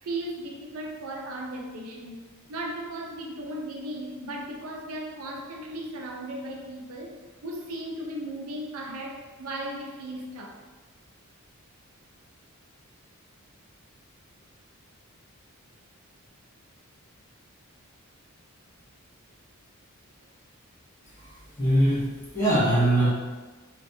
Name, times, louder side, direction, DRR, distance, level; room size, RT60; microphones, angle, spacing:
voice 1, 0.0-2.2 2.5-10.6, right 1 dB, 80° right, 0 dB, 0.5 m, -36 dB
voice 2, 21.2-23.1, right 1 dB, 35° left, -9 dB, 1.0 m, -23 dB
2.6 x 2.2 x 2.6 m, 1.3 s
head